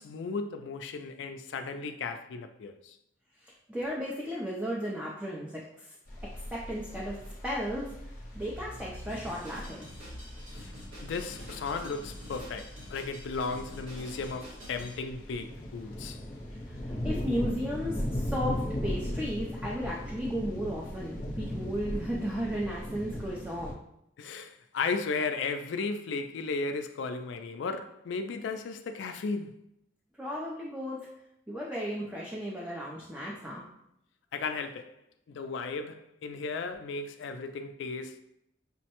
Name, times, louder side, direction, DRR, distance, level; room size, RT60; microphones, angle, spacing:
voice 1, 0.0-3.0 10.5-10.7 11.0-16.2 24.2-29.5 34.3-34.9 35.3-38.2, left 4 dB, 70° left, 0.3 m, -35 dB
voice 2, 3.4-6.0 6.5-7.2 7.4-7.9 8.3-9.9 16.9-23.8 30.2-31.0 31.5-33.6, equal, 5° right, 0.4 m, -34 dB
sound 1, 6.1-23.7, equal, 45° left, 0.7 m, -38 dB
Drum kit, 9.1-15.0, equal, 90° right, 1.5 m, -48 dB
5.3 x 2.1 x 2.9 m
head